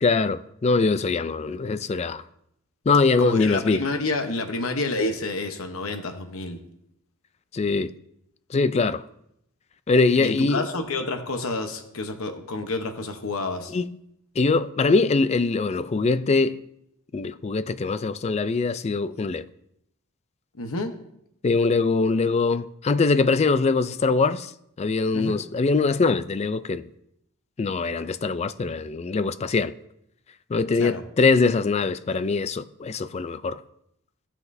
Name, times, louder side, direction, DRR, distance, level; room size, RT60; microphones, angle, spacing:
voice 1, 0.0-2.2 2.9-3.8 7.5-7.9 8.5-9.0 9.9-10.6 13.7-13.9 14.4-16.6 17.1-19.4 21.4-24.5 24.8-26.8 27.6-29.7 30.5-33.6, left 4 dB, 30° left, 0.3 m, -22 dB
voice 2, 3.2-6.6 10.2-13.7 20.6-20.9 25.1-25.4 30.7-31.0, left 2 dB, 70° left, 1.0 m, -29 dB
16.5 x 5.8 x 2.7 m
head